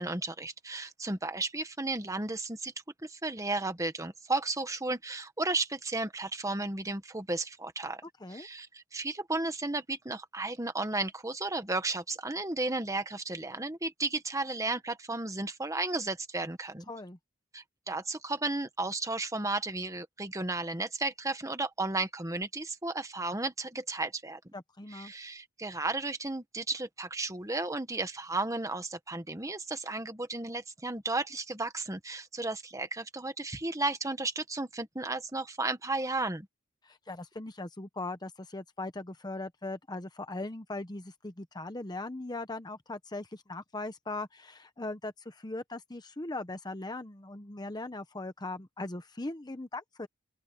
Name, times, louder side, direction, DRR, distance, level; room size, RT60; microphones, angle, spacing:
voice 1, 0.0-2.7 3.0-8.0 8.3-16.8 17.5-24.4 24.9-36.5, right 2 dB, 15° right, 1.5 m, -34 dB
voice 2, 16.9-17.2 24.5-25.1 36.8-50.1, left 2 dB, 20° left, 0.9 m, -39 dB
open air
head